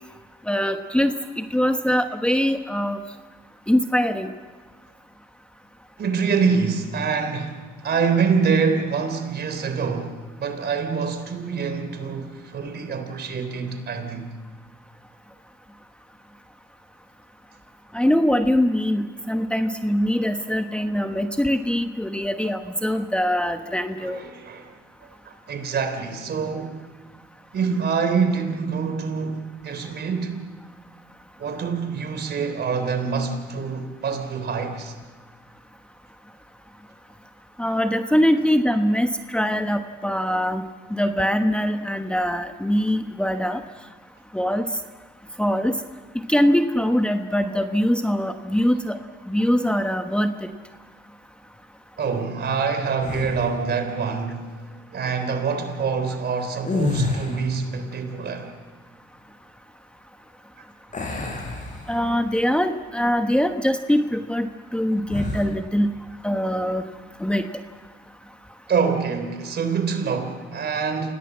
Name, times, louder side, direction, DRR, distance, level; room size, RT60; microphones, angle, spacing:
voice 1, 0.5-3.0 3.7-4.3 17.9-24.2 37.6-40.6 40.9-43.6 44.3-44.7 45.4-45.8 46.1-49.0 49.3-50.5 61.9-65.9 66.2-66.8 67.2-67.5, equal, 5° left, 1.1 m, -22 dB
voice 2, 6.0-14.3 24.0-24.7 25.3-26.8 27.5-30.4 31.4-35.0 52.0-54.6 54.9-58.6 68.7-71.1, right 5 dB, 55° right, 3.6 m, -25 dB
sound 1, 53.0-53.6 56.6-57.7 60.9-62.4 62.8-63.0 65.1-65.6, left 3 dB, 40° left, 5.9 m, -28 dB
27.0 x 17.5 x 7.4 m
cardioid pair, 90°, 20 cm